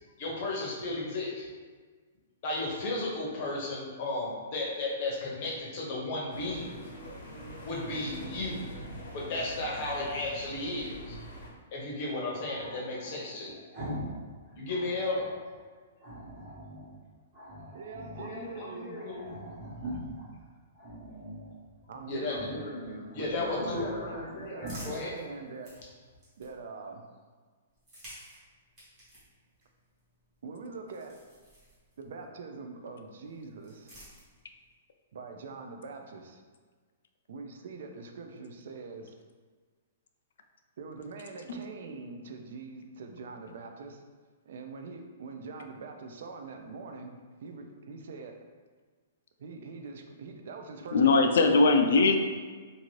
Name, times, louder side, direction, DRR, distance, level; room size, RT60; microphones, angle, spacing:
voice 1, 0.2-1.5 2.4-6.8 7.6-8.7 9.1-11.2 11.7-13.5 14.6-15.3 18.2-19.4 22.1-25.1, left 2 dB, 35° left, -3 dB, 0.7 m, -34 dB
sound 1, 6.3-11.5, equal, 80° left, 0.8 m, -44 dB
Growling, 8.1-10.1 12.4-14.2 14.5-15.4 16.0-16.9 17.3-18.3 18.6-18.7 18.9-20.3 20.7-21.5 22.2-22.7 23.0-24.2 24.6-24.9, equal, 40° right, 1.0 m, -43 dB
voice 2, 17.7-19.0 21.9-22.7 23.1-25.7 26.4-27.0 30.4-31.2 32.0-34.0 35.1-36.4 37.3-39.1 40.8-44.0 44.5-48.4 49.4-51.7, right 4 dB, 55° right, 4 dB, 0.3 m, -43 dB
sound 2, 24.0-26.9 27.7-32.3 33.2-34.7, right 1 dB, 20° right, 1.2 m, -53 dB
voice 3, 50.9-52.2, left 3 dB, 65° left, 5 dB, 0.3 m, -21 dB
2.6 x 2.5 x 3.0 m, 1.5 s
hypercardioid pair, 175°, 0 cm